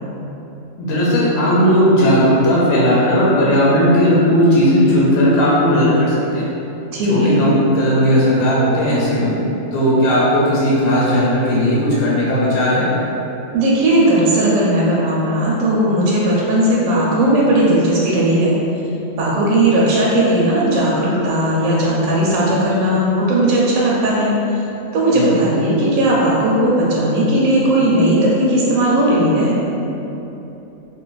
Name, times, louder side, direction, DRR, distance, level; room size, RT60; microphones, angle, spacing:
voice 1, 0.8-6.5 7.1-9.3 9.7-12.9 25.1-25.4, equal, 75° left, -7 dB, 1.0 m, -15 dB
voice 2, 6.9-7.5 13.5-18.6 19.2-24.3 24.9-29.6, right 1 dB, 70° right, -5 dB, 0.9 m, -16 dB
2.5 x 2.4 x 3.8 m, 3.0 s
omnidirectional pair, 1.5 m